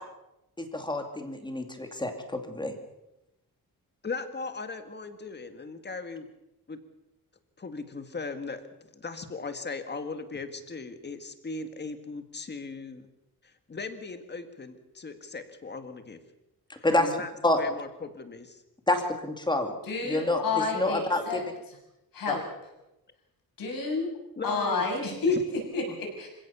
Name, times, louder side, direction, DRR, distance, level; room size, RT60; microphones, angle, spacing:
voice 1, 0.6-2.7 16.7-17.1 17.4-17.6 18.9-19.7 20.1-21.4 22.3-22.4, left 2 dB, 10° left, 5 dB, 2.5 m, -28 dB
voice 2, 4.0-6.3 6.7-6.8 7.6-8.6 8.9-13.1 13.4-16.2 16.9-17.3 17.6-18.6 24.4-24.9 25.3-25.4, left 4 dB, 30° left, 8 dB, 1.9 m, -38 dB
voice 3, 19.8-21.8 22.1-22.4 23.6-24.2 24.4-26.3, left 3 dB, 65° left, 1 dB, 7.0 m, -30 dB
26.5 x 16.5 x 7.0 m, 0.91 s
wide cardioid pair, 175°, 36 cm